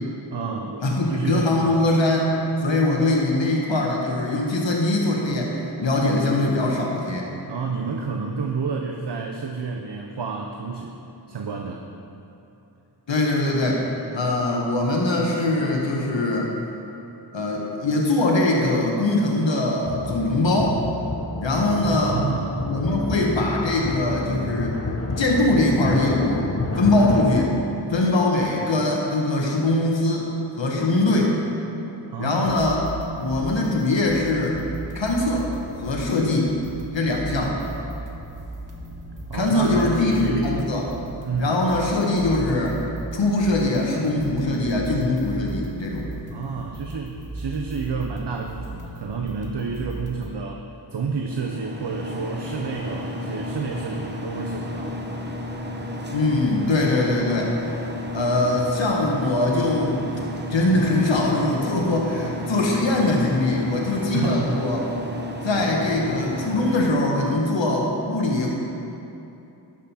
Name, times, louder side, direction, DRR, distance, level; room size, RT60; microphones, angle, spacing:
voice 1, 0.3-1.8 7.5-11.0 11.3-11.9 22.0-22.5 32.1-32.5 39.3-40.6 41.3-41.6 46.3-50.6 50.9-54.9 64.1-64.6, right 5 dB, 70° right, 3 dB, 0.7 m, -30 dB
voice 2, 0.8-7.3 13.1-13.9 14.1-16.5 17.3-20.8 21.4-22.2 22.6-24.8 25.2-26.4 26.8-27.5 27.9-30.3 30.6-31.3 32.2-32.8 33.2-34.6 34.9-35.5 35.8-36.6 36.9-37.6 39.3-40.8 41.4-42.8 43.1-46.1 56.1-57.5 58.1-60.0 60.5-64.9 65.4-68.5, left 2 dB, 90° left, -1 dB, 1.0 m, -22 dB
sound 1, 19.9-27.5, left 2 dB, 35° left, 0.8 m, -29 dB
sound 2, 32.5-50.3, right 2 dB, 45° right, 1.1 m, -36 dB
sound 3, 51.2-66.9, left 1 dB, 25° right, 0.8 m, -32 dB
11.5 x 6.1 x 4.1 m, 2.9 s
wide cardioid pair, 50°, 43 cm